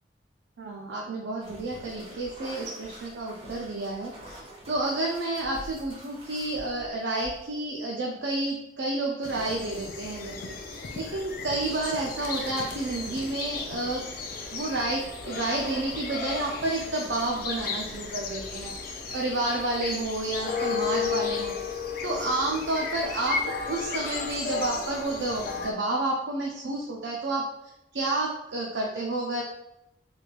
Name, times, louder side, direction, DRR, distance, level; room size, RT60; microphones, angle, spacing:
voice 1, 0.6-14.0 14.5-21.5 22.0-27.4 27.9-29.4, right 2 dB, 80° right, -1 dB, 0.5 m, -30 dB
sound 1, 1.4-7.7, equal, 35° right, 1.1 m, -46 dB
sound 2, 9.2-25.7, left 5 dB, 55° left, 0.5 m, -34 dB
3.4 x 3.1 x 2.4 m, 0.85 s
head